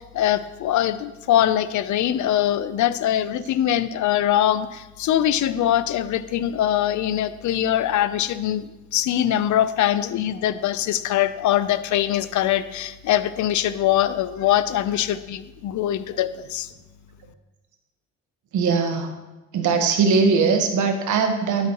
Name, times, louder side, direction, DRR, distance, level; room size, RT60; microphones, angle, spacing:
voice 1, 0.0-16.7, left 11 dB, 75° left, 13 dB, 0.6 m, -22 dB
voice 2, 18.5-19.1 19.5-21.7, right 5 dB, 75° right, 5 dB, 1.4 m, -20 dB
12.5 x 7.3 x 3.0 m, 1.1 s
cardioid pair, 90°, 30 cm